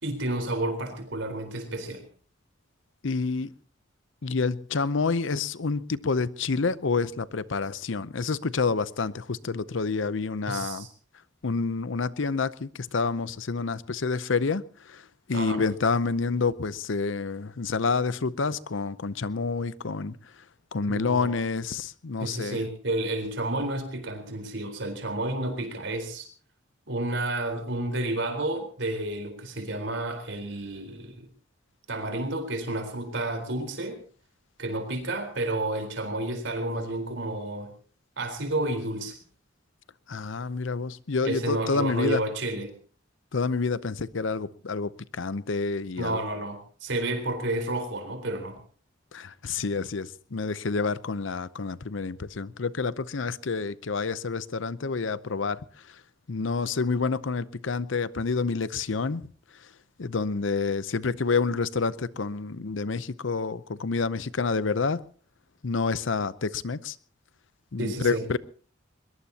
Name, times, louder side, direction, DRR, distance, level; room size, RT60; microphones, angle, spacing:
voice 1, 0.0-2.1 10.5-10.9 15.3-15.6 20.9-21.3 22.2-26.3 26.9-31.3 31.9-34.0 34.6-37.7 38.2-39.2 41.2-42.7 46.0-48.6 67.8-68.2, right 1 dB, 70° right, 4.1 m, -31 dB
voice 2, 3.0-3.5 4.2-10.9 11.4-20.4 20.7-22.6 40.1-42.2 43.3-46.2 49.1-55.6 55.9-56.0 56.3-59.3 60.0-65.0 65.6-67.0 67.7-68.4, left 4 dB, 75° left, 0.7 m, -28 dB
22.0 x 21.5 x 2.9 m
head